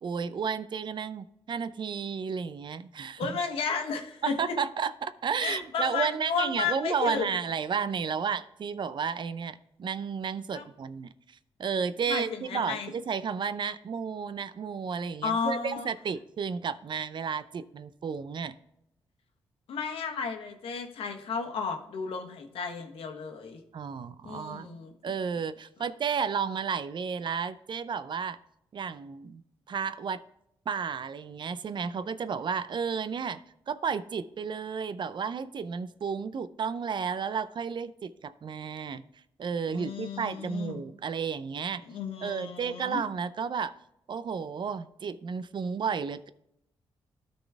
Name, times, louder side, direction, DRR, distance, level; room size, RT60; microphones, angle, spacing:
voice 1, 0.0-3.4 4.2-18.5 23.7-24.7 25.0-28.4 28.7-30.2 30.7-33.4 33.7-39.0 39.4-41.8 42.2-43.7 44.1-46.3, right 6 dB, 55° right, 14 dB, 0.5 m, -32 dB
voice 2, 3.2-4.6 5.4-7.3 10.5-10.7 12.1-12.9 15.2-15.9 19.7-23.6 24.2-24.9 39.7-40.8 41.9-43.0, left 5 dB, 80° left, 5 dB, 1.3 m, -33 dB
13.0 x 4.3 x 3.4 m, 0.79 s
cardioid pair, 60°, 9 cm